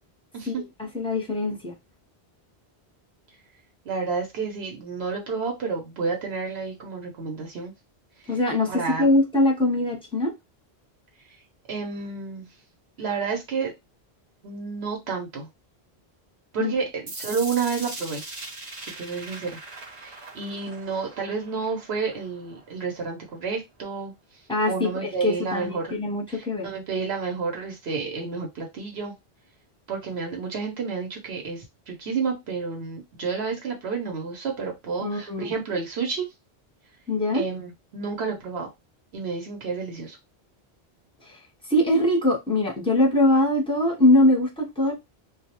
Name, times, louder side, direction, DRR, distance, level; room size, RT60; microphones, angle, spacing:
voice 1, 0.8-1.7 8.3-10.3 16.6-16.7 24.5-26.7 35.0-35.5 37.1-37.4 41.7-44.9, left 1 dB, 5° left, 0.7 m, -22 dB
voice 2, 3.8-7.7 8.2-8.4 8.7-9.1 11.7-12.5 13.0-13.7 14.4-15.5 16.5-18.2 18.8-19.6 19.9-24.1 24.7-26.0 26.3-29.1 29.9-36.3 37.3-38.7 39.1-40.2, right 5 dB, 75° right, 0.9 m, -30 dB
sound 1, 17.1-23.0, right 2 dB, 35° right, 0.7 m, -41 dB
2.3 x 2.1 x 2.8 m
omnidirectional pair, 1.1 m